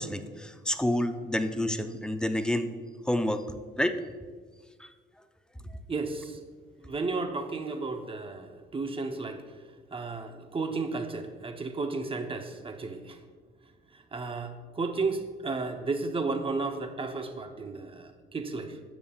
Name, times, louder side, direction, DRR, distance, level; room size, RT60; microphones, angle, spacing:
voice 1, 0.0-2.7 3.1-3.5 3.8-4.0 4.8-4.9, left 1 dB, 5° left, 8 dB, 0.5 m, -28 dB
voice 2, 5.9-6.4 6.8-9.4 9.9-13.2 14.1-18.8, right 3 dB, 25° right, 6 dB, 0.8 m, -33 dB
12.5 x 7.2 x 2.4 m, 1.5 s
cardioid pair, 90°, 20 cm